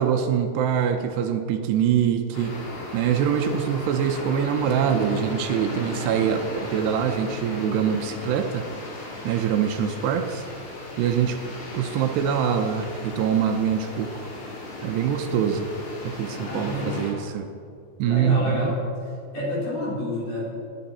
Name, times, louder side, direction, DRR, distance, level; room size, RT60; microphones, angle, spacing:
voice 1, 0.0-2.5 2.9-8.7 9.2-10.5 11.0-11.4 11.7-14.3 14.8-15.7 16.0-17.5 18.0-18.7, right 8 dB, 75° right, 6 dB, 2.7 m, -24 dB
sound 1, 2.3-17.1, left 2 dB, 65° left, 5.3 m, -36 dB
voice 2, 16.4-16.9 18.0-18.8 19.3-20.5, left 1 dB, 45° left, -7 dB, 5.0 m, -28 dB
18.5 x 11.0 x 4.3 m, 2.5 s
omnidirectional pair, 5.3 m